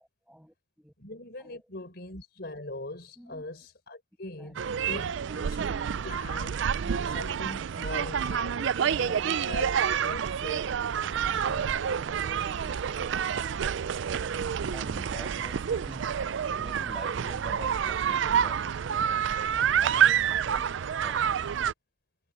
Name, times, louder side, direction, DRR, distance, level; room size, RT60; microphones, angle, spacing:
voice 1, 0.0-0.9 1.4-1.9 3.2-3.5 4.3-4.6 14.7-16.2 16.6-19.3 19.8-20.8 21.0-21.5, equal, 5° right, 7.0 m, -49 dB
voice 2, 1.0-4.6 4.9-5.6 6.0-6.6 7.1-9.7 10.0-10.6 10.9-11.1 11.5-11.9, left 2 dB, 50° left, 4.8 m, -41 dB
sound 1, 4.6-21.7, right 8 dB, 65° right, 0.4 m, -28 dB
head